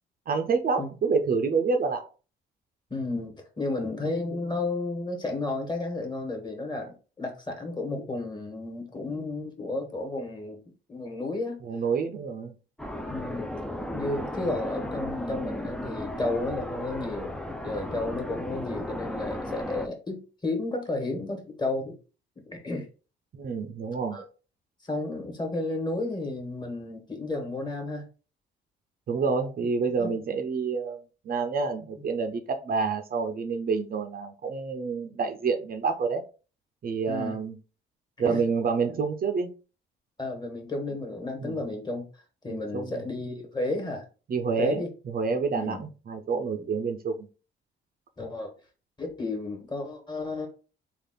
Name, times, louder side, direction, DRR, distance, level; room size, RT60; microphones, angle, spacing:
voice 1, 0.3-2.1 11.6-12.5 23.3-24.2 29.1-31.0 31.2-36.2 36.8-37.5 38.2-39.5 41.4-41.6 42.5-43.0 44.3-47.3, right 5 dB, 45° right, 5 dB, 0.6 m, -28 dB
voice 2, 2.9-11.6 13.1-13.5 13.9-17.3 17.6-22.0 22.3-22.9 24.1-24.2 24.8-28.1 30.0-30.2 37.1-37.4 38.2-38.4 38.9-39.0 40.2-42.0 42.4-44.0 44.6-44.9 45.5-45.8 46.6-46.7 48.2-48.5 49.0-50.5, left 2 dB, 20° left, 3 dB, 1.4 m, -32 dB
sound 1, 12.8-19.9, left 1 dB, 5° left, 0.4 m, -35 dB
3.4 x 2.4 x 3.8 m, 0.35 s
cardioid pair, 90°, 20 cm